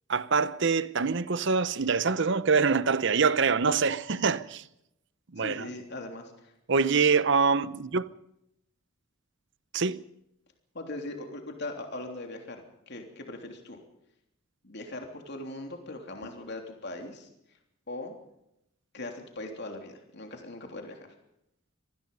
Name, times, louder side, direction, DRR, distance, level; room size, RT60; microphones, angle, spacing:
voice 1, 0.1-4.6 5.3-5.7 6.7-8.1 9.7-10.0, right 5 dB, 60° right, 0.8 m, -25 dB
voice 2, 5.4-6.9 10.7-12.6 12.9-13.8 14.6-17.3 17.9-18.1 18.9-21.1, left 2 dB, 55° left, 3.3 m, -40 dB
25.0 x 19.0 x 5.5 m
head